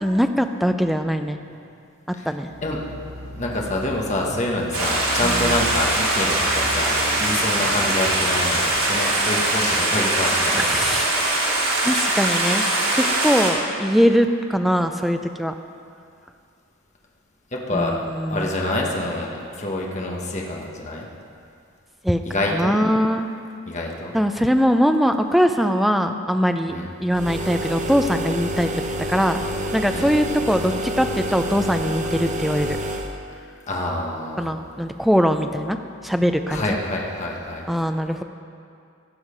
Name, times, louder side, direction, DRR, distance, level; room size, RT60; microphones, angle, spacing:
voice 1, 0.0-1.4 2.3-2.5 5.3-5.6 10.5-11.1 11.8-12.6 12.9-15.5 17.7-18.5 22.0-22.2 22.5-23.3 24.1-28.7 29.1-29.4 29.7-32.8 34.4-35.8 36.0-36.6 37.7-38.2, equal, ahead, 7 dB, 0.4 m, -21 dB
sound 1, 2.5-9.6, equal, 65° right, 2.2 m, -37 dB
voice 2, 3.3-10.8 17.5-19.3 19.6-21.1 22.2-22.8 23.7-24.1 26.7-26.9 29.9-30.1 33.7-34.5 36.5-37.6, left 1 dB, 35° left, -1 dB, 1.2 m, -26 dB
Stream, 4.7-13.5, right 2 dB, 90° right, 2.7 m, -22 dB
sound 2, 27.1-33.1, equal, 35° right, 0.7 m, -28 dB
16.5 x 6.4 x 5.0 m, 2.4 s
head